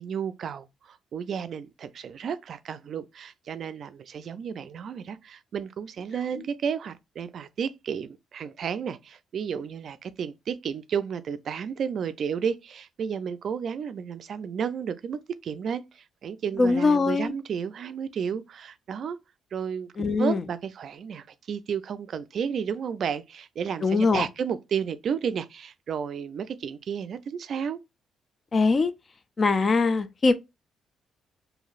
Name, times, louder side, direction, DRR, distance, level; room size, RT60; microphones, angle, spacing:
voice 1, 0.0-19.2 19.5-27.8, right 7 dB, 60° right, 0.3 m, -32 dB
voice 2, 16.6-17.3 20.0-20.4 23.8-24.3 28.5-28.9 29.4-30.3, left 3 dB, 35° left, 0.4 m, -22 dB
3.0 x 2.6 x 2.4 m
cardioid pair, 90°, 0 cm